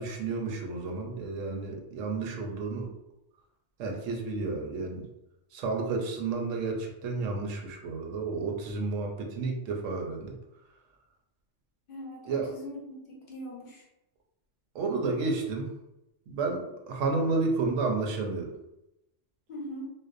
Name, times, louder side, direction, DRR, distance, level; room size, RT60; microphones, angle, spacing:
voice 1, 0.0-2.9 3.8-5.0 5.5-10.3 12.3-12.5 14.7-15.7 16.3-18.5, right 3 dB, 80° right, 2 dB, 0.9 m, -31 dB
voice 2, 11.9-13.8 19.5-19.8, equal, 55° left, -3 dB, 0.7 m, -41 dB
2.5 x 2.0 x 2.4 m, 0.88 s
omnidirectional pair, 1.3 m